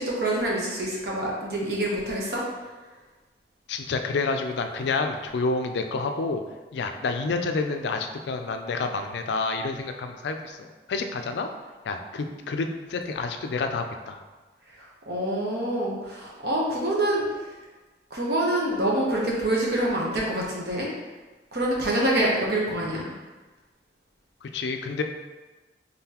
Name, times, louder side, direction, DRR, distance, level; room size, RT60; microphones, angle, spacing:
voice 1, 0.0-2.4 14.8-17.2 18.1-20.9 21.5-23.1, right 1 dB, 60° right, -3 dB, 0.9 m, -26 dB
voice 2, 3.7-6.4 6.7-11.5 11.9-14.2 24.4-25.0, left 3 dB, 70° left, 6 dB, 0.4 m, -29 dB
3.8 x 3.8 x 2.9 m, 1.2 s
head